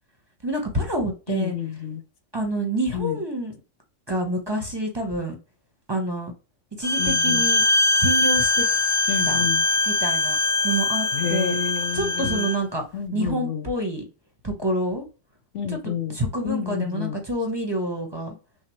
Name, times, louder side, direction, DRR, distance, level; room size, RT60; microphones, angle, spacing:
voice 1, 0.4-1.5 2.3-3.5 4.1-5.4 5.9-6.3 6.8-7.6 8.0-8.6 9.3-9.4 9.9-10.4 10.6-11.5 11.9-12.8 13.1-14.0 14.4-15.0 15.7-15.8 16.1-18.4, right 1 dB, 20° right, 1.0 m, -27 dB
voice 2, 1.3-2.0 2.9-3.2 7.0-7.5 9.1-9.7 11.1-12.5 12.9-13.7 15.5-16.2 16.4-17.2, left 8 dB, 70° left, 1.0 m, -29 dB
Bowed string instrument, 6.8-12.6, left 2 dB, 45° left, 0.4 m, -22 dB
6.1 x 2.3 x 3.2 m
omnidirectional pair, 1.3 m